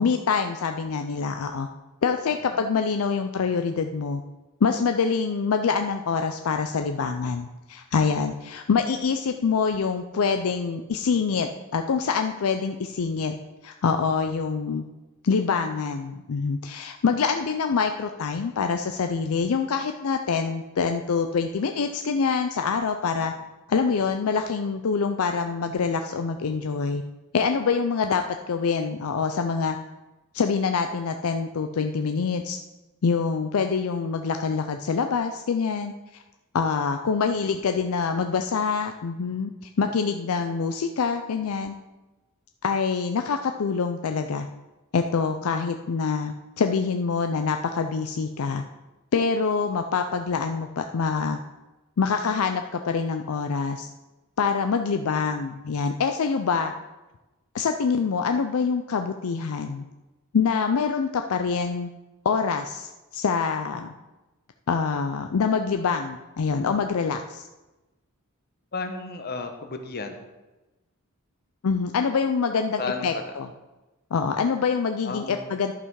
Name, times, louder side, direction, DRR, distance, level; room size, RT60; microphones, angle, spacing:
voice 1, 0.0-1.7 2.0-4.2 4.6-13.3 13.6-14.8 15.2-23.3 23.7-27.0 27.3-29.8 30.3-32.6 33.0-35.9 36.5-41.7 42.6-44.5 44.9-48.6 49.1-51.4 52.0-53.9 54.4-56.7 57.5-59.8 60.3-61.9 62.2-63.9 64.7-67.5 71.6-73.5 74.1-75.7, left 5 dB, 70° left, 6 dB, 0.5 m, -25 dB
voice 2, 68.7-70.2 72.8-73.1 75.0-75.4, left 4 dB, 45° left, 6 dB, 1.0 m, -32 dB
11.0 x 5.6 x 4.7 m, 1.1 s
head